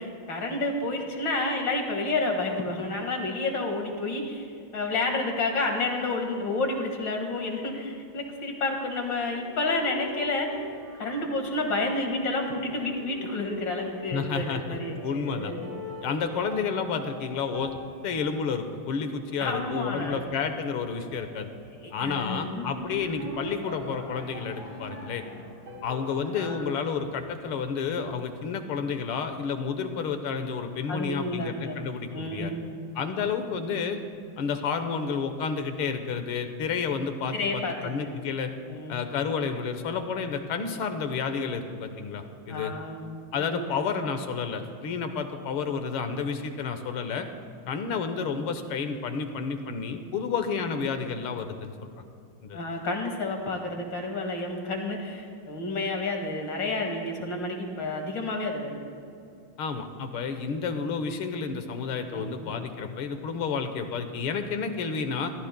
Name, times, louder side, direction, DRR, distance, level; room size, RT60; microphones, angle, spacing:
voice 1, 0.0-4.5 4.7-10.5 11.0-15.7 19.4-20.2 21.8-22.7 26.3-26.6 30.9-31.8 32.1-32.9 37.3-37.9 38.7-39.0 42.5-43.0 43.4-43.8 52.5-58.8 62.1-62.5, left 2 dB, 60° left, 2 dB, 2.5 m, -30 dB
sound 1, 9.1-27.7, left 1 dB, 50° right, 4.5 m, -42 dB
voice 2, 14.1-15.5 16.0-17.8 18.0-21.5 21.9-25.2 25.8-32.5 33.0-34.0 34.4-38.5 38.9-42.7 43.3-47.3 47.7-51.9 52.4-52.6 59.6-65.3, left 5 dB, 85° left, 7 dB, 1.9 m, -30 dB
27.0 x 14.5 x 2.2 m, 2.6 s
omnidirectional pair, 2.3 m